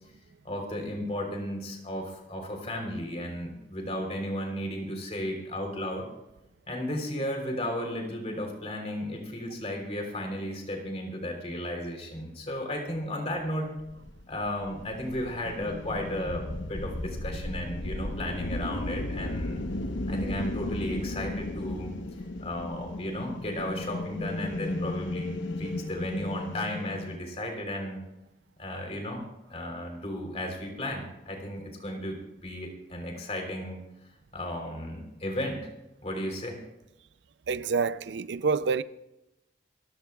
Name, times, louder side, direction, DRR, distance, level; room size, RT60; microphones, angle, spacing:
voice 1, 0.4-6.1 6.7-13.7 14.3-19.6 20.1-21.9 22.4-28.0 28.6-29.2 29.5-33.8 34.3-35.6 36.0-36.6, left 1 dB, 35° left, 3.6 m, -34 dB
sound 1, 13.8-27.2, left 1 dB, 90° left, 1.0 m, -35 dB
voice 2, 37.5-38.8, right 5 dB, 75° right, 0.5 m, -27 dB
27.0 x 15.0 x 2.4 m
head